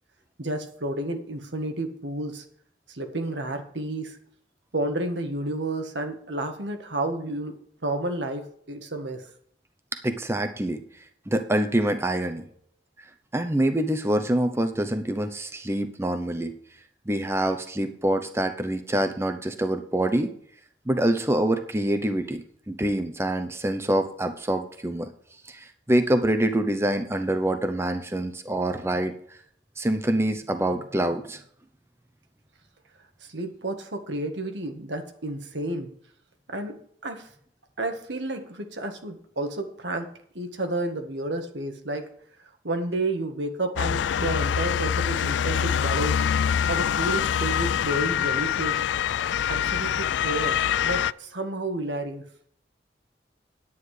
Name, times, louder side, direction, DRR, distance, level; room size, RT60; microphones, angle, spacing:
voice 1, 0.4-2.4 2.9-4.2 4.7-7.6 7.8-9.2 33.2-35.9 36.5-36.8 37.0-37.3 37.8-40.1 40.3-42.1 42.6-46.2 46.7-48.8 49.5-52.2, right 2 dB, 80° right, 5 dB, 1.7 m, -31 dB
voice 2, 10.0-12.5 13.3-16.5 17.1-20.3 20.9-25.1 25.4-29.4 29.8-31.4, right 1 dB, 15° right, 8 dB, 0.7 m, -26 dB
Motor vehicle (road) / Siren, 43.8-51.1, left 8 dB, 80° left, 0.3 m, -25 dB
9.6 x 9.5 x 4.9 m, 0.63 s
head